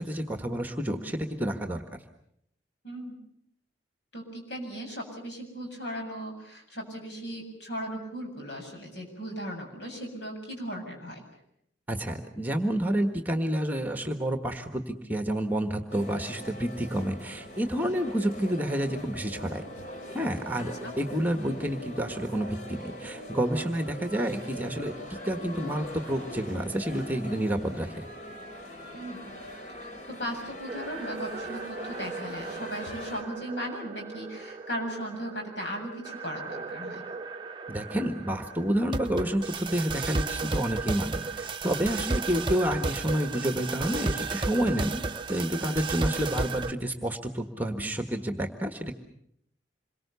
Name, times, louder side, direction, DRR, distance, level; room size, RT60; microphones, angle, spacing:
voice 1, 0.0-1.8 11.9-19.6 20.1-28.0 37.7-45.0 45.3-48.9, right 1 dB, 10° right, 6 dB, 1.5 m, -29 dB
voice 2, 2.8-3.2 4.1-11.2 20.6-20.9 28.9-29.4 29.8-37.0, equal, 65° left, 2 dB, 7.8 m, -37 dB
sound 1, 15.9-33.2, left 1 dB, 40° left, 3.2 m, -42 dB
sound 2, 30.7-46.7, right 3 dB, 25° right, 0.9 m, -34 dB
27.0 x 23.0 x 6.9 m, 0.72 s
head